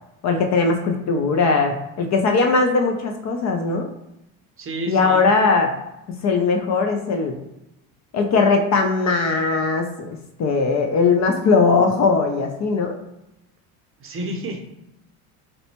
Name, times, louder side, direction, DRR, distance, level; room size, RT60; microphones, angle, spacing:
voice 1, 0.2-3.9 4.9-5.7 6.2-7.4 8.1-10.1 10.4-12.9, left 4 dB, 40° left, 4 dB, 0.5 m, -19 dB
voice 2, 4.6-5.2 14.0-14.6, right 1 dB, 30° right, 2 dB, 0.6 m, -30 dB
4.0 x 2.2 x 2.8 m, 0.87 s
supercardioid pair, 105°, 45 cm